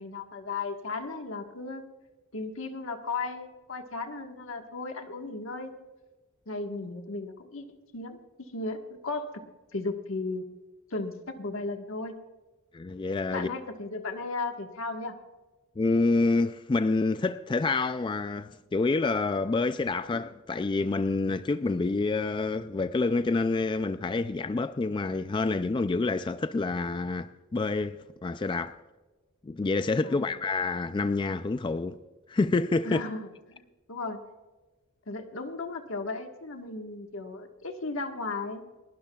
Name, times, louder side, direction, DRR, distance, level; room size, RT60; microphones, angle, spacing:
voice 1, 0.0-1.8 2.3-5.9 6.5-7.7 7.9-9.3 9.7-10.4 10.9-12.1 13.3-15.1 30.0-30.3 32.8-33.2 33.5-33.6 33.9-34.2 35.1-38.6, left 3 dB, 75° left, 1.4 m, -35 dB
voice 2, 12.7-13.5 15.8-28.8 29.4-32.0 32.3-33.0, left 3 dB, 25° left, 0.3 m, -27 dB
30.0 x 12.0 x 2.3 m
head